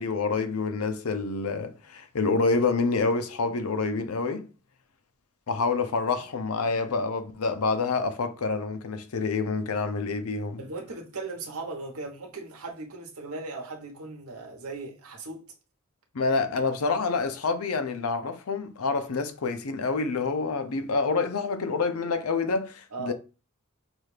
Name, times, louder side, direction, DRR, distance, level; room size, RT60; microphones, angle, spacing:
voice 1, 0.0-4.5 5.5-10.6 16.1-23.1, left 4 dB, 80° left, 0.6 m, -27 dB
voice 2, 10.6-15.5 22.9-23.1, right 3 dB, 80° right, 1.1 m, -38 dB
5.9 x 2.4 x 3.3 m
head